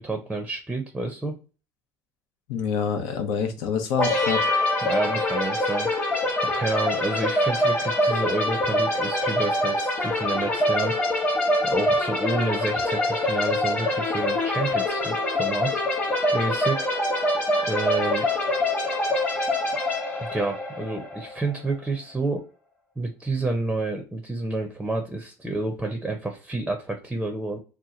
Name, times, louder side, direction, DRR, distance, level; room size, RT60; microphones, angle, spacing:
voice 1, 0.0-1.3 4.8-11.0 11.6-15.7 16.3-16.9 17.7-18.3 20.2-22.4 23.0-27.6, right 2 dB, 5° right, 4 dB, 0.6 m, -29 dB
voice 2, 2.5-4.5, left 6 dB, 85° left, 5 dB, 0.8 m, -27 dB
sound 1, 4.0-21.6, left 1 dB, 25° left, 1.0 m, -25 dB
2.9 x 2.2 x 3.7 m, 0.34 s
cardioid pair, 130°, 7 cm